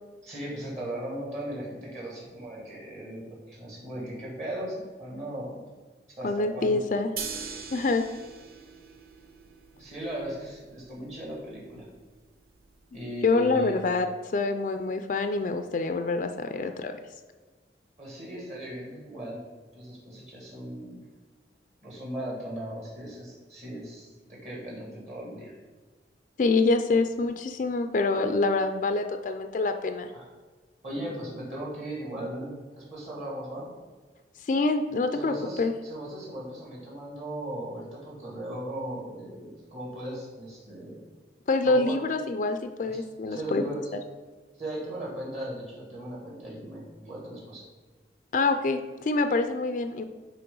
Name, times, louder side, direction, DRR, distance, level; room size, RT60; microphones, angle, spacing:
voice 1, 0.2-5.5 6.2-6.8 9.8-11.9 12.9-13.8 18.0-19.4 19.7-21.0 21.8-25.5 30.1-30.3 30.8-33.7 35.1-41.0 41.7-41.9 42.8-42.9 43.3-43.8 44.5-47.6, right 1 dB, 40° right, -5 dB, 1.9 m, -37 dB
voice 2, 6.2-7.1 7.7-8.0 13.2-17.0 26.4-30.1 34.4-35.7 41.5-43.6 43.9-44.0 48.3-50.0, left 3 dB, 45° left, 7 dB, 0.3 m, -26 dB
sound 1, 7.2-13.2, right 6 dB, 55° right, 0.6 m, -43 dB
9.2 x 3.4 x 3.8 m, 1.3 s
head